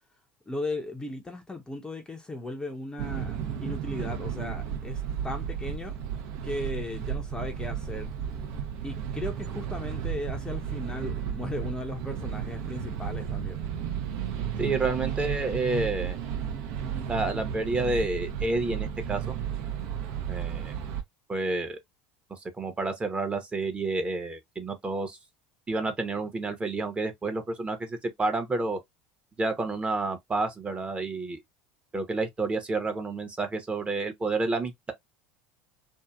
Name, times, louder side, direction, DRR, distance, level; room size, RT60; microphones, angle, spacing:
voice 1, 0.5-6.0 6.4-8.1 8.8-13.7, left 2 dB, 10° left, 0.6 m, -36 dB
sound 1, 3.0-21.0, right 8 dB, 65° right, 0.7 m, -33 dB
voice 2, 14.6-16.2 17.1-19.3 20.3-20.7 21.3-21.8 22.3-25.2 25.7-28.8 29.4-31.4 31.9-34.9, right 3 dB, 20° right, 0.8 m, -29 dB
2.7 x 2.4 x 2.2 m
hypercardioid pair, 90°, 6 cm